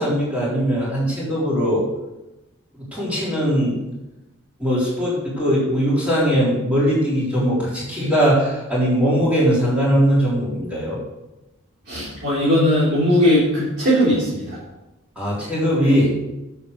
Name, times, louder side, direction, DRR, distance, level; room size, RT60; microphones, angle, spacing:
voice 1, 0.0-1.8 2.9-3.8 4.6-11.0 15.2-16.1, equal, 5° right, -8 dB, 4.0 m, -20 dB
voice 2, 11.9-14.6, equal, 50° right, -11 dB, 3.6 m, -18 dB
8.8 x 7.0 x 6.6 m, 0.99 s
head